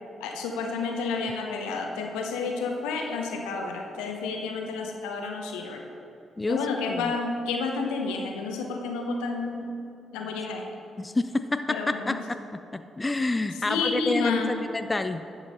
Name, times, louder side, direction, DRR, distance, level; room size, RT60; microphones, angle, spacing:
voice 1, 0.2-5.8 6.5-9.7 10.1-10.6 11.7-12.2 13.7-14.6, left 4 dB, 80° left, 3 dB, 0.8 m, -30 dB
voice 2, 6.4-7.1 11.0-12.4 12.7-15.2, left 2 dB, 25° left, 10 dB, 0.4 m, -28 dB
11.0 x 5.7 x 4.2 m, 2.7 s
hypercardioid pair, 40°, 0 cm